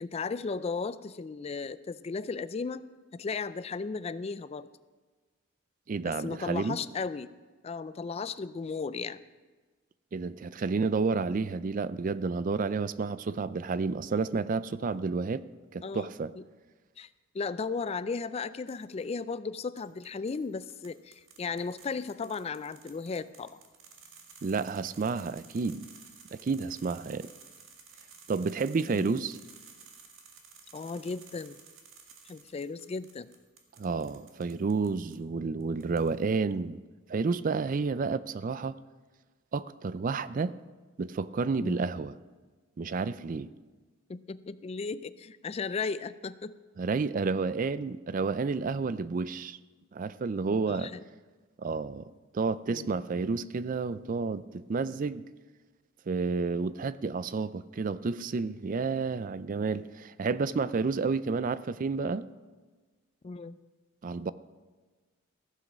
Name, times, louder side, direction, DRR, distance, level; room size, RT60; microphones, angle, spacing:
voice 1, 0.0-2.8 3.1-4.7 6.0-7.3 7.6-9.2 15.8-16.1 16.4-16.5 17.0-17.1 17.3-23.6 28.9-29.2 30.7-31.6 32.3-33.3 41.6-41.9 44.1-46.6 50.7-51.0 52.7-53.0 63.2-63.6, left 4 dB, 30° left, 0.3 m, -35 dB
voice 2, 5.9-6.8 10.1-15.4 15.7-16.3 24.4-25.9 26.3-27.3 28.3-29.4 33.8-36.8 37.1-38.7 39.5-40.5 41.0-42.2 42.8-43.5 46.8-49.6 49.9-50.9 51.6-55.2 56.1-62.3 64.0-64.3, right 4 dB, 40° right, 0.4 m, -30 dB
sound 1, 18.7-19.1 19.8-35.2 35.6-36.4, right 5 dB, 75° right, 1.7 m, -55 dB
15.0 x 7.6 x 6.1 m
head